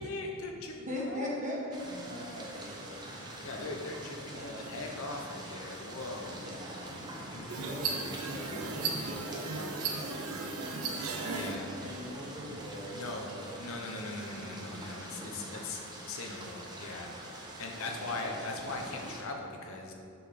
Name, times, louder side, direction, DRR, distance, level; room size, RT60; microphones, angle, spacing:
voice 1, 0.0-1.3 3.4-6.4 7.2-7.6 11.3-11.7 12.9-13.3 13.6-19.9, left 2 dB, 70° left, 2 dB, 0.9 m, -40 dB
voice 2, 0.8-3.2 4.3-4.8 6.3-7.0 7.6-13.6 14.3-15.0 17.9-18.5, left 1 dB, 35° right, -3 dB, 1.2 m, -42 dB
sound 1, 1.7-19.2, right 1 dB, 20° right, 0.8 m, -45 dB
sound 2, 7.5-11.5, right 4 dB, 80° right, 0.8 m, -36 dB
6.1 x 5.4 x 5.2 m, 2.5 s
head